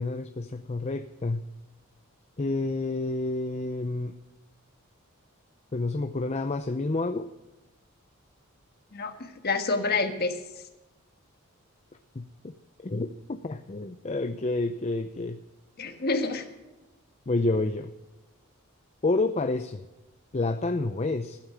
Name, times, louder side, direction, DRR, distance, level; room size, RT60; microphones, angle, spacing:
voice 1, 0.0-1.4 2.4-4.1 5.7-7.3 12.2-12.3 12.8-15.4 17.3-17.9 19.0-19.8 20.3-21.4, left 2 dB, 30° left, 8 dB, 0.5 m, -29 dB
voice 2, 8.9-10.4 15.8-16.4, left 3 dB, 45° left, 6 dB, 1.5 m, -28 dB
14.5 x 9.1 x 6.1 m, 1.1 s
head